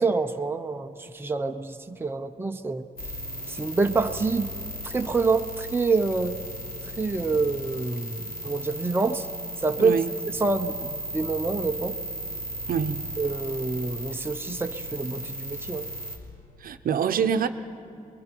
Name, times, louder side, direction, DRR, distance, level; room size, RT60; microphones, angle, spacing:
voice 1, 0.0-2.9 3.5-4.5 4.8-6.4 7.0-9.3 9.6-10.0 10.4-12.0 13.2-15.9, right 4 dB, 15° right, 5 dB, 0.7 m, -27 dB
sound 1, 3.0-16.2, equal, 80° left, 3.2 m, -36 dB
voice 2, 9.8-10.1 12.7-13.0 16.6-17.5, right 7 dB, 70° right, 8 dB, 0.8 m, -25 dB
28.0 x 22.0 x 4.6 m, 2.7 s
wide cardioid pair, 140°, 15 cm